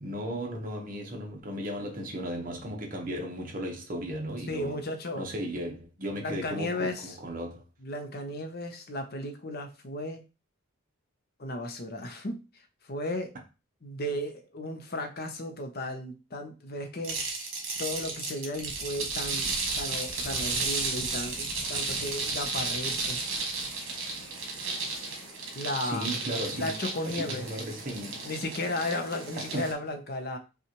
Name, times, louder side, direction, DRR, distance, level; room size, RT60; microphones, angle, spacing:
voice 1, 0.0-4.8 5.2-7.6 25.8-28.2 29.4-29.7, right 1 dB, 40° right, 1.0 m, -36 dB
voice 2, 4.5-5.3 6.1-7.2 7.8-10.2 11.4-12.4 12.9-13.4 13.8-17.2 17.8-19.5 19.8-23.2 25.6-26.1 26.5-27.5 28.2-30.4, left 1 dB, 45° left, 0.7 m, -34 dB
sound 1, 17.0-29.7, right 3 dB, 65° right, 1.4 m, -33 dB
5.6 x 2.4 x 3.0 m
head